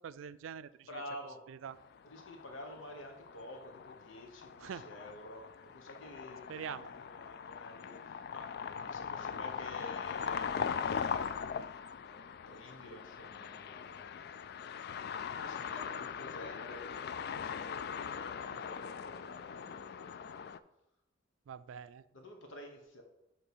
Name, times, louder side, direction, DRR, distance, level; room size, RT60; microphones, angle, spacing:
voice 1, 0.0-1.0 1.5-1.8 4.6-4.9 6.5-6.9 21.5-22.0, right 8 dB, 85° right, 16 dB, 0.3 m, -44 dB
voice 2, 0.9-1.4 2.0-11.3 11.9-14.3 15.3-20.5 22.1-23.0, left 1 dB, 75° left, 2 dB, 1.2 m, -50 dB
sound 1, 1.8-20.6, left 7 dB, 55° left, 0.3 m, -41 dB
8.3 x 3.3 x 6.2 m, 0.86 s
head